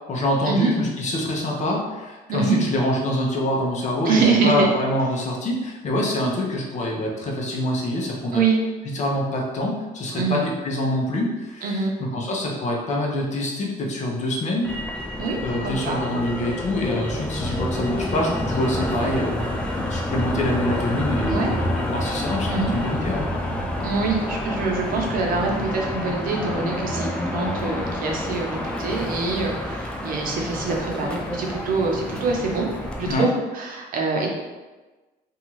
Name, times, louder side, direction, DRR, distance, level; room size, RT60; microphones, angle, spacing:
voice 1, 0.1-8.4 8.9-11.7 12.1-14.7 15.4-19.4 19.9-23.3 33.1-33.3, left 1 dB, 45° left, -1 dB, 0.7 m, -25 dB
voice 2, 4.0-4.7 8.3-8.6 10.1-10.4 11.6-11.9 15.2-15.4 15.6-16.0 21.3-21.5 22.5-22.7 23.8-32.7 33.0-34.3, right 4 dB, 55° right, 0 dB, 0.6 m, -24 dB
Motor vehicle (road), 14.6-33.1, left 1 dB, 5° left, 0.3 m, -28 dB
2.7 x 2.3 x 3.0 m, 1.2 s
cardioid pair, 110°, 17 cm